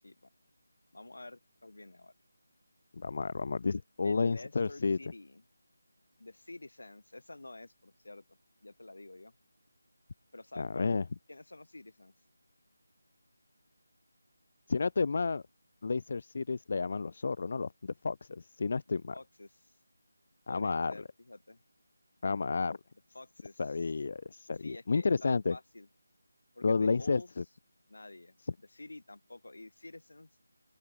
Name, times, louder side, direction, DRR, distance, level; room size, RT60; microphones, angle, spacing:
voice 1, 0.9-2.1 4.0-5.4 6.2-8.2 8.6-9.3 10.3-10.9 11.3-12.1 18.9-19.7 20.5-21.6 23.1-23.9 24.6-25.9 26.5-27.3 27.9-30.3, left 2 dB, 80° left, 5.9 m, -49 dB
voice 2, 2.9-5.0 10.6-11.0 14.7-15.4 15.8-19.2 20.5-20.9 22.2-22.8 23.6-25.6 26.6-27.4, left 4 dB, 45° left, 0.6 m, -31 dB
open air
figure-of-eight pair, 170°, 0 cm